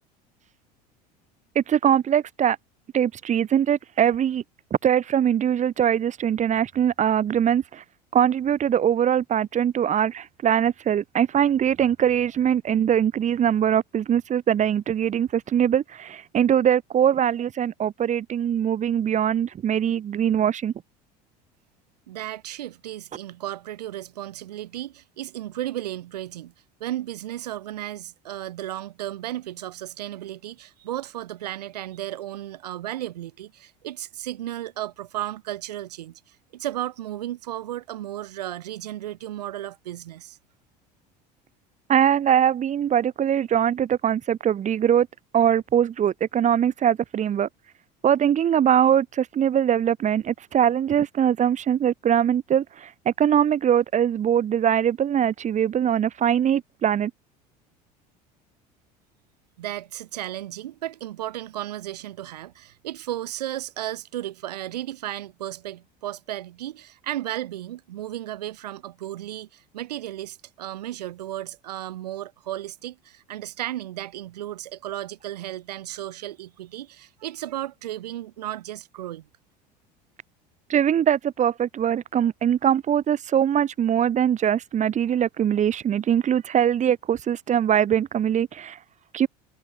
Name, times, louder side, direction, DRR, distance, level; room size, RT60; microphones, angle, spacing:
voice 1, 1.5-2.6 2.9-4.4 4.8-7.8 8.1-20.7 41.9-45.1 45.3-47.5 48.0-57.1 80.7-88.8 89.1-89.3, right 9 dB, 35° right, 2.8 m, -22 dB
voice 2, 22.1-26.5 26.8-40.4 59.6-79.3, right 13 dB, 70° right, 4.9 m, -34 dB
figure-of-eight pair, 70°, 21 cm